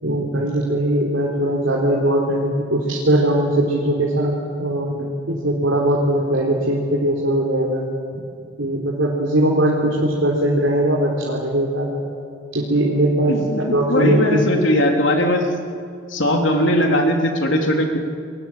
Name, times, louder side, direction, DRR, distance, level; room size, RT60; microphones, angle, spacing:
voice 1, 0.0-4.3 4.6-7.9 8.6-11.9 12.5-14.5, right 1 dB, 70° right, -3 dB, 4.0 m, -20 dB
voice 2, 13.3-13.6 13.9-15.5 16.1-18.0, equal, 65° left, 2 dB, 3.6 m, -19 dB
30.0 x 22.5 x 7.6 m, 2.4 s
head